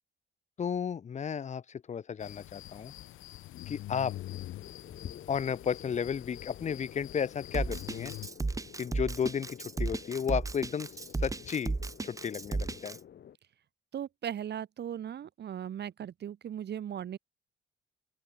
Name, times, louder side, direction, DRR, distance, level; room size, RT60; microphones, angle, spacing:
voice 1, 0.6-2.9 3.7-4.2 5.3-8.1 8.8-10.9 11.2-11.8 12.0-13.0, left 7 dB, 35° left, 0.7 m, -33 dB
sound 1, 2.2-8.3, left 16 dB, 85° left, 1.1 m, -45 dB
sound 2, 4.1-13.4, left 9 dB, 60° left, 1.8 m, -50 dB
Drum kit, 7.5-13.0, right 3 dB, 15° right, 0.9 m, -34 dB
voice 2, 13.9-17.2, right 9 dB, 60° right, 1.5 m, -38 dB
open air
cardioid pair, 90°, 20 cm